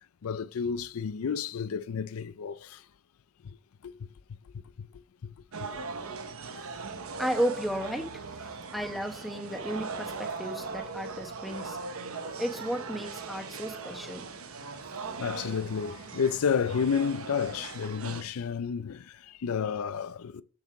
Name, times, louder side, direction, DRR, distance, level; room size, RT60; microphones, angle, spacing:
voice 1, 0.2-2.8 3.8-3.9 15.2-20.4, left 6 dB, 80° left, 0.4 m, -31 dB
sound 1, 5.5-18.2, right 4 dB, 75° right, 1.0 m, -39 dB
voice 2, 7.2-11.8 12.4-14.3, equal, ahead, 0.9 m, -33 dB
6.9 x 6.4 x 4.7 m
head